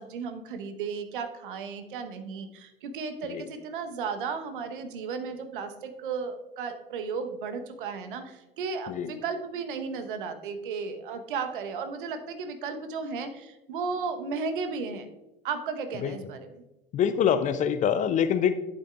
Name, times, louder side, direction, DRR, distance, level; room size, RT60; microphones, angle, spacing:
voice 1, 0.0-15.1 15.4-16.4, right 5 dB, 60° right, 8 dB, 1.0 m, -34 dB
voice 2, 16.9-18.5, left 8 dB, 25° left, 11 dB, 0.5 m, -25 dB
11.0 x 8.3 x 2.4 m, 0.99 s
figure-of-eight pair, 80°, 29 cm